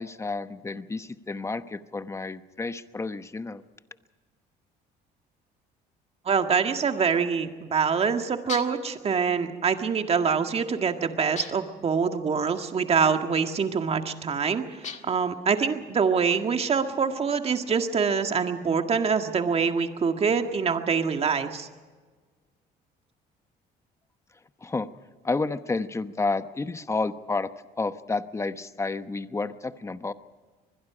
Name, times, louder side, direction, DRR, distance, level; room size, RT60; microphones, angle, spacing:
voice 1, 0.0-3.6 24.6-24.9 25.2-27.5 27.8-30.1, left 3 dB, 15° left, 11 dB, 1.0 m, -30 dB
voice 2, 6.3-14.6 15.0-21.7, right 6 dB, 35° right, 6 dB, 1.9 m, -25 dB
sound 1, 8.5-8.9 11.4-11.8 14.8-15.3, left 6 dB, 45° left, 1.8 m, -38 dB
24.5 x 21.0 x 5.0 m, 1.4 s
cardioid pair, 110°, 17 cm